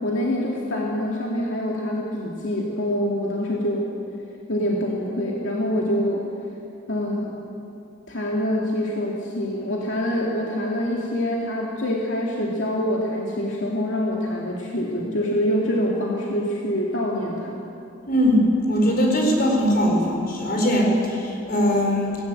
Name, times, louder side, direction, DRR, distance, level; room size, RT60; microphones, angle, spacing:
voice 1, 0.0-3.9 4.5-6.2 6.9-7.3 8.1-17.6, left 1 dB, 80° left, -3 dB, 2.4 m, -25 dB
voice 2, 18.1-22.2, equal, 50° left, 0 dB, 4.8 m, -20 dB
19.0 x 17.5 x 8.6 m, 2.7 s
head